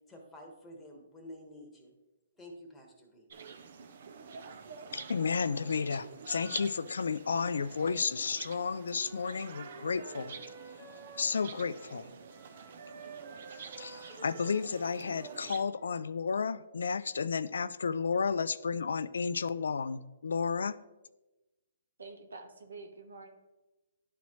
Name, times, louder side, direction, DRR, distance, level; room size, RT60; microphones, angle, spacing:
voice 1, 0.1-1.9 2.3-3.2, left 1 dB, 10° left, 0 dB, 1.3 m, -50 dB
sound 1, 3.3-15.6, right 6 dB, 55° right, 0.6 m, -48 dB
voice 2, 4.9-10.3 11.2-12.1 13.8-20.8, left 5 dB, 80° left, 16 dB, 0.3 m, -32 dB
Wind instrument woodwind instrument, 8.8-12.0 12.3-16.2, right 4 dB, 30° right, 1.4 m, -52 dB
voice 3, 22.0-23.3, right 3 dB, 85° right, 5 dB, 1.1 m, -47 dB
11.0 x 4.1 x 3.1 m, 1.1 s
hypercardioid pair, 145°, 0 cm